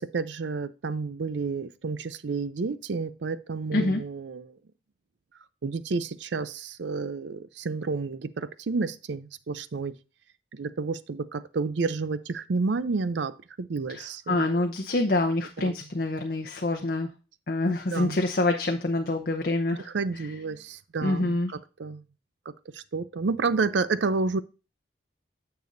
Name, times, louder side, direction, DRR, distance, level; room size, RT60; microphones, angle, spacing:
voice 1, 0.0-4.6 5.6-10.0 10.5-14.7 15.6-15.8 17.9-18.2 19.9-22.0 22.7-24.4, right 4 dB, 85° right, 0.5 m, -30 dB
voice 2, 13.9-17.1 17.5-19.9 21.0-21.5, left 2 dB, 55° left, 0.7 m, -26 dB
9.3 x 6.9 x 2.6 m
head